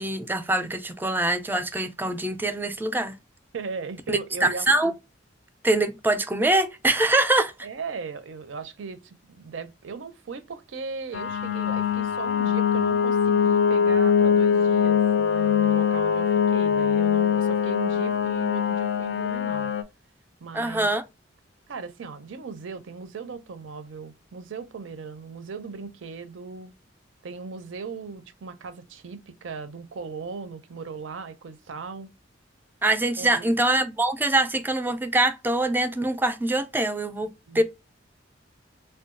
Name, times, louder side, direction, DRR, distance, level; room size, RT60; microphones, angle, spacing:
voice 1, 0.0-3.1 4.1-4.9 5.6-7.5 20.5-21.0 32.8-37.3 37.5-37.6, right 2 dB, 10° right, 0.3 m, -24 dB
voice 2, 3.5-4.9 7.6-19.7 20.4-20.9 21.7-26.7 27.2-32.1 33.2-33.5 37.5-37.6, right 5 dB, 80° right, 0.5 m, -38 dB
sound 1, 11.1-19.8, left 7 dB, 70° left, 0.4 m, -22 dB
3.6 x 2.2 x 2.4 m
head